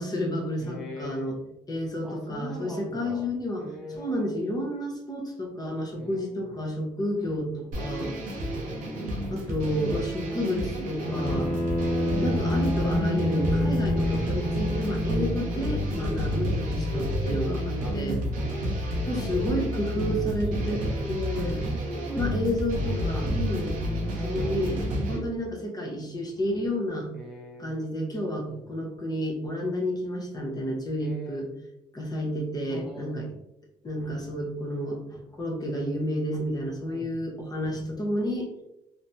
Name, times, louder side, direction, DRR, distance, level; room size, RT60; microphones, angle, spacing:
voice 1, 0.0-1.4 1.7-3.7 3.9-8.2 9.3-11.5 12.2-18.2 19.1-20.8 21.1-21.7 22.2-23.7 24.2-24.8 25.1-27.1 27.6-31.5 31.9-33.3 33.8-38.5, equal, 30° left, -1 dB, 0.9 m, -30 dB
voice 2, 0.6-1.3 2.0-3.3 3.6-4.3 6.0-6.4 7.9-8.4 10.2-10.4 13.8-14.2 15.0-15.3 16.1-16.4 16.8-18.6 18.9-19.4 20.4-21.5 21.9-22.5 27.1-27.7 28.5-28.7 31.0-31.5 32.7-33.4 36.8-37.2, equal, 5° right, -3 dB, 0.6 m, -42 dB
sound 1, 7.7-25.2, equal, 80° right, 0.7 m, -30 dB
Bowed string instrument, 11.0-15.5, equal, 60° left, 0.9 m, -28 dB
3.2 x 2.0 x 2.7 m, 0.87 s
cardioid pair, 80°, 13 cm